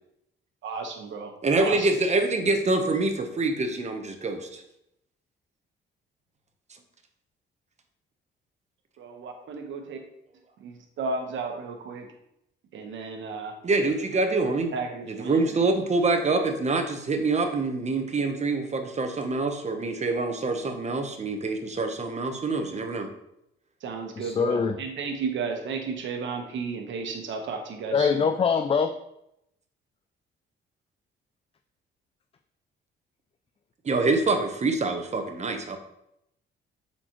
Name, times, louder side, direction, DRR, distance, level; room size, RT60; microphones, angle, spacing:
voice 1, 0.6-1.3 1.6-1.9 9.0-10.0 10.6-12.1 12.7-13.5 14.7-15.6 23.8-28.3, right 4 dB, 70° right, 4 dB, 1.2 m, -33 dB
voice 2, 1.4-4.6 13.6-14.7 15.1-23.1 33.8-35.8, right 3 dB, 35° right, 6 dB, 0.9 m, -25 dB
voice 3, 24.2-24.8 27.9-28.9, left 6 dB, 30° left, 7 dB, 0.4 m, -23 dB
7.5 x 4.3 x 3.0 m, 0.81 s
cardioid pair, 90°, 20 cm